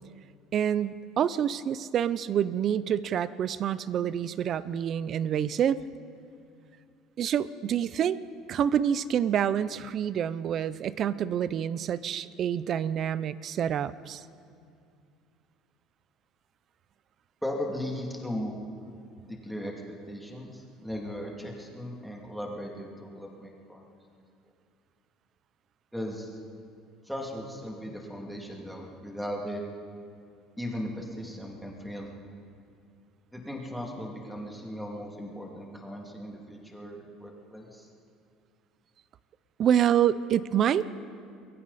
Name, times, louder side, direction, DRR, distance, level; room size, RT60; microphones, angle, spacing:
voice 1, 0.5-5.8 7.2-8.2 8.5-14.2 39.6-41.0, right 9 dB, 40° right, 16 dB, 0.6 m, -27 dB
voice 2, 17.4-18.6 19.2-23.9 25.9-26.4 27.0-29.6 30.6-32.1 33.3-37.9, equal, ahead, -2 dB, 2.6 m, -37 dB
28.5 x 22.5 x 4.2 m, 2.4 s
cardioid pair, 150°, 0 cm